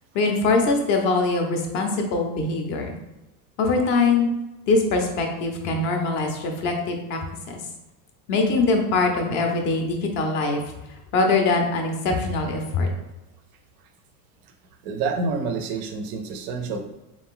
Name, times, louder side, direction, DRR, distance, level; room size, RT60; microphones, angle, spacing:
voice 1, 0.1-2.9 3.6-4.3 4.7-7.2 7.5-7.6 8.3-10.6 11.1-12.9, left 3 dB, 35° left, 3 dB, 0.5 m, -22 dB
voice 2, 14.8-16.8, right 4 dB, 40° right, 6 dB, 0.4 m, -28 dB
4.3 x 2.4 x 3.6 m, 0.98 s
supercardioid pair, 165°, 47 cm